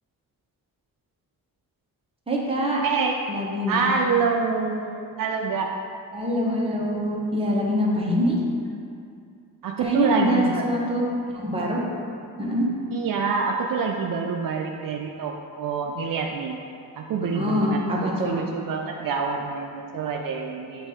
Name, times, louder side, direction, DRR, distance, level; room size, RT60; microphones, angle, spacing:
voice 1, 2.3-2.8 3.3-3.8 6.1-8.4 9.8-11.0 11.3-11.8 12.4-12.7 17.2-18.3, equal, 15° right, -4 dB, 1.0 m, -24 dB
voice 2, 2.8-3.2 3.7-5.7 9.6-10.6 12.9-16.6 17.0-20.9, right 5 dB, 65° right, 1 dB, 0.5 m, -26 dB
7.5 x 2.7 x 4.9 m, 2.4 s
cardioid pair, 110°, 37 cm